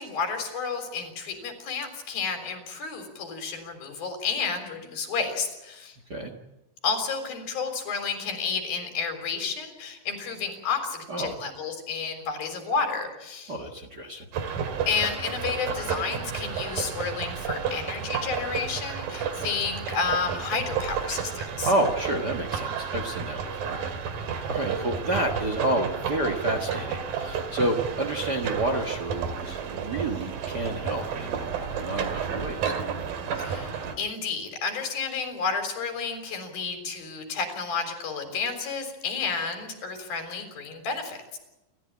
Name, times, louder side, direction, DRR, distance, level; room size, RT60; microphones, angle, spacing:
voice 1, 0.0-6.0 6.8-13.6 14.9-21.7 33.4-41.4, left 5 dB, 80° left, 6 dB, 5.5 m, -31 dB
voice 2, 13.5-14.2 21.6-23.8 24.5-32.7, right 1 dB, 45° right, 6 dB, 1.4 m, -29 dB
sound 1, 14.3-34.0, right 6 dB, 75° right, 3.8 m, -32 dB
28.5 x 14.0 x 8.7 m, 0.98 s
omnidirectional pair, 4.1 m